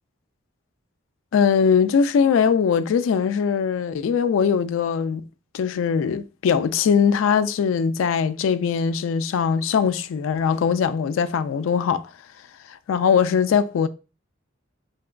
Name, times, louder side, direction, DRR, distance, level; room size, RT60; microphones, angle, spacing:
voice 1, 1.3-5.2 5.5-12.1 12.7-13.9, left 6 dB, 85° left, 0.3 m, -21 dB
4.4 x 2.9 x 2.4 m
head